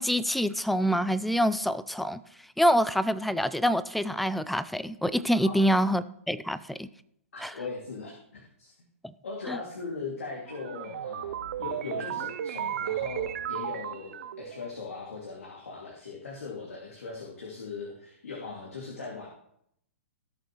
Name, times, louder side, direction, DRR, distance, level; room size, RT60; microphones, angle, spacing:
voice 1, 0.0-2.2 2.6-6.9 7.4-7.5 9.5-9.6, equal, ahead, 0.4 m, -26 dB
voice 2, 7.3-8.7 9.2-19.3, left 4 dB, 85° left, 2.3 m, -39 dB
sound 1, 10.5-14.7, right 10 dB, 65° right, 0.6 m, -34 dB
16.5 x 6.6 x 3.1 m
hypercardioid pair, 125°, 8 cm